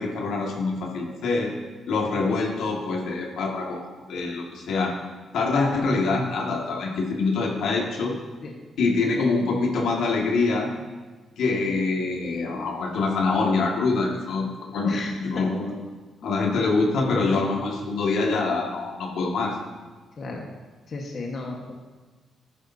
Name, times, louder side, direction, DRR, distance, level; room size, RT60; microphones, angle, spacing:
voice 1, 0.0-1.5 1.9-4.9 5.3-8.1 8.8-10.7 11.4-14.9 15.2-15.8 16.2-19.6, left 3 dB, 80° left, -1 dB, 1.9 m, -25 dB
voice 2, 14.8-15.4 20.2-20.5 20.9-21.8, left 2 dB, 50° left, -1 dB, 1.4 m, -32 dB
14.0 x 10.0 x 2.8 m, 1.3 s
cardioid pair, 90°, 0 cm